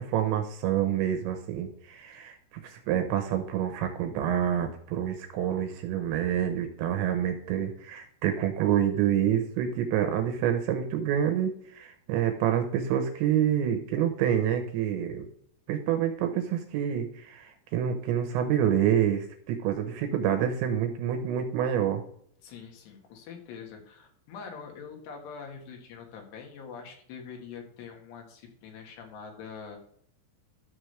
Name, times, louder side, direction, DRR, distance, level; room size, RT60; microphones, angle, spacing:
voice 1, 0.0-2.4 2.6-15.3 15.7-22.0, right 9 dB, 80° right, 6 dB, 3.0 m, -27 dB
voice 2, 22.4-29.8, left 6 dB, 65° left, 2 dB, 3.4 m, -44 dB
13.0 x 6.1 x 3.3 m, 0.64 s
omnidirectional pair, 5.7 m